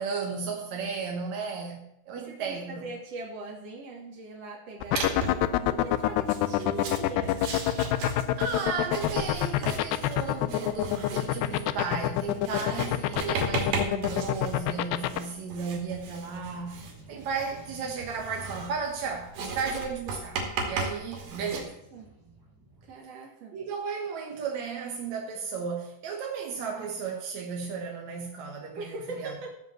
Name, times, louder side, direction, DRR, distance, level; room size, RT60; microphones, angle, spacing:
voice 1, 0.0-2.9 8.4-21.8 23.5-29.3, right 5 dB, 65° right, 1.8 m, -34 dB
voice 2, 2.2-7.6 21.5-22.1 22.8-23.6 28.8-29.5, right 3 dB, 40° right, 3.0 m, -41 dB
sound 1, 4.8-15.2, left 15 dB, 80° left, 2.7 m, -25 dB
Writing, 5.0-5.5 6.2-21.6, right 4 dB, 80° right, 4.7 m, -36 dB
sound 2, 16.4-22.9, right 2 dB, 10° right, 1.0 m, -52 dB
15.0 x 5.3 x 7.6 m
omnidirectional pair, 5.0 m